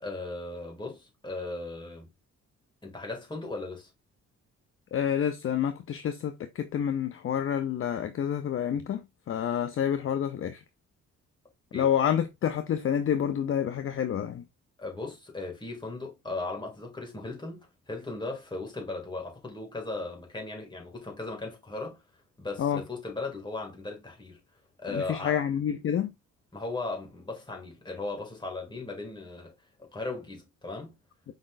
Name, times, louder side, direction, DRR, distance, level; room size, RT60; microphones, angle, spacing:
voice 1, 0.0-2.1 2.8-3.9 11.7-11.9 14.8-22.0 22.4-24.4 24.8-25.4 26.5-29.5 29.8-30.9, left 3 dB, 15° left, 2.1 m, -37 dB
voice 2, 4.9-10.6 11.7-14.5 22.6-22.8 24.9-26.1, left 9 dB, 45° left, 0.5 m, -28 dB
5.0 x 4.0 x 2.5 m
cardioid pair, 90°, 30 cm